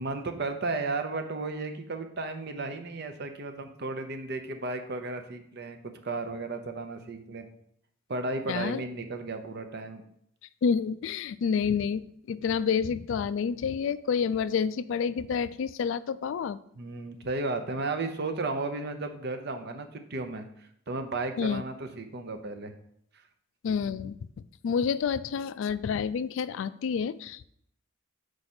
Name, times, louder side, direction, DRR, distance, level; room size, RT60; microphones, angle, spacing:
voice 1, 0.0-7.5 8.1-10.0 16.8-22.7, right 3 dB, 50° right, 7 dB, 0.7 m, -34 dB
voice 2, 8.5-8.8 10.6-16.6 21.4-21.6 23.6-24.2 24.6-27.5, left 6 dB, 65° left, 16 dB, 0.3 m, -29 dB
6.6 x 4.8 x 4.3 m, 0.69 s
head